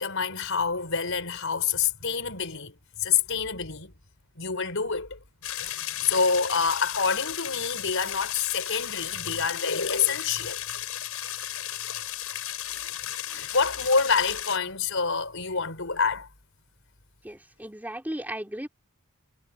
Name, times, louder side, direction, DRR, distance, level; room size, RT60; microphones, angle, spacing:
voice 1, 0.0-3.9 4.4-5.2 5.6-10.6 12.7-12.9 13.2-16.3, left 5 dB, 65° left, 5.6 m, -27 dB
sound 1, 5.4-14.6, left 12 dB, 80° left, 5.7 m, -35 dB
voice 2, 17.2-18.7, right 1 dB, 10° right, 3.5 m, -35 dB
head